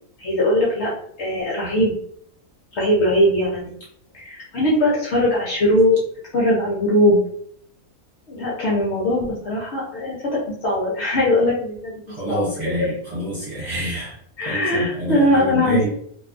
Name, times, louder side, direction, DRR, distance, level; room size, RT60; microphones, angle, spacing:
voice 1, 0.2-0.9 1.2-1.9 2.7-3.7 4.1-6.0 6.3-7.2 8.3-12.5 14.4-15.9, left 1 dB, 60° left, -4 dB, 0.9 m, -20 dB
voice 2, 12.1-14.1 14.4-15.9, right 1 dB, 30° right, -8 dB, 1.3 m, -27 dB
2.6 x 2.3 x 2.4 m, 0.66 s
omnidirectional pair, 1.5 m